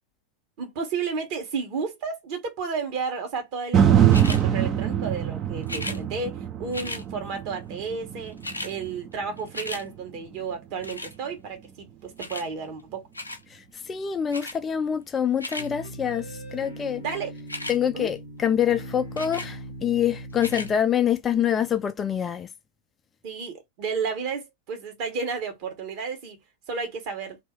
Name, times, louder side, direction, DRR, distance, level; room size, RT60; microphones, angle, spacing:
voice 1, 0.6-8.4 8.6-13.1 17.0-17.3 17.9-18.1 23.2-26.4 26.7-27.4, right 5 dB, 45° right, 1.3 m, -32 dB
sound 1, 3.7-11.9 12.4-12.5, right 9 dB, 30° right, 0.5 m, -25 dB
sound 2, 4.1-4.4 5.6-6.0 6.7-7.0 8.0-8.1 8.3-8.7 9.1-9.8 10.8-11.1 12.2-12.5 13.1-13.4 14.3-14.6 15.2-15.7 17.4-17.8 19.2-19.5 20.3-20.7 21.4-21.5, left 2 dB, 85° left, 0.6 m, -35 dB
voice 2, 13.5-17.0 17.7-22.5, left 9 dB, 20° left, 0.4 m, -26 dB
sound 3, 15.5-20.7, right 1 dB, 85° right, 1.2 m, -40 dB
2.8 x 2.7 x 3.6 m
figure-of-eight pair, 90°, 0 cm